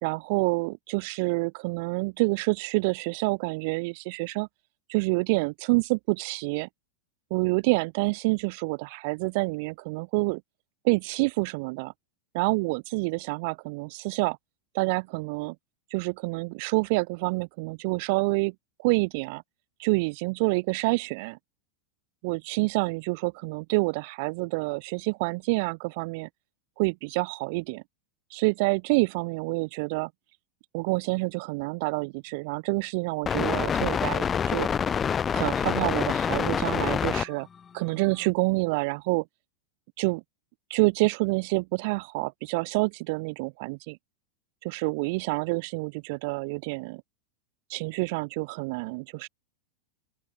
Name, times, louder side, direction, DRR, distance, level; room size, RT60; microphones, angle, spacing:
voice 1, 0.0-4.5 4.9-6.7 7.3-10.4 10.8-11.9 12.3-14.4 14.7-15.6 15.9-19.4 19.8-21.4 22.2-26.3 26.8-27.8 28.3-30.1 30.7-34.7 35.3-37.5 37.7-39.2 40.0-40.2 40.7-44.0 44.6-47.0 47.7-49.3, right 28 dB, 55° right, 2.4 m, -27 dB
sound 1, 33.3-37.3 38.0-38.1, left 7 dB, 25° left, 1.0 m, -26 dB
open air
figure-of-eight pair, 95°, 0 cm